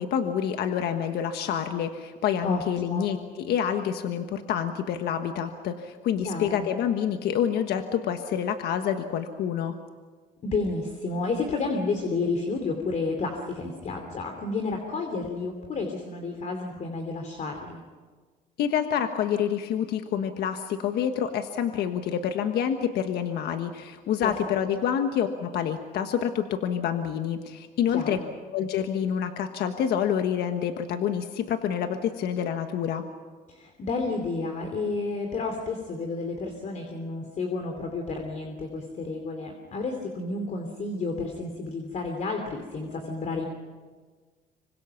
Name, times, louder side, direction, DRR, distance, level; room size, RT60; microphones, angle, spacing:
voice 1, 0.0-9.7 18.6-28.2 28.5-33.0, left 8 dB, 70° left, 7 dB, 1.4 m, -27 dB
voice 2, 2.4-3.1 6.2-6.7 10.4-17.8 24.2-24.3 27.9-28.3 33.5-43.5, left 3 dB, 45° left, 4 dB, 3.0 m, -31 dB
26.0 x 24.5 x 6.0 m, 1.4 s
cardioid pair, 110°, 17 cm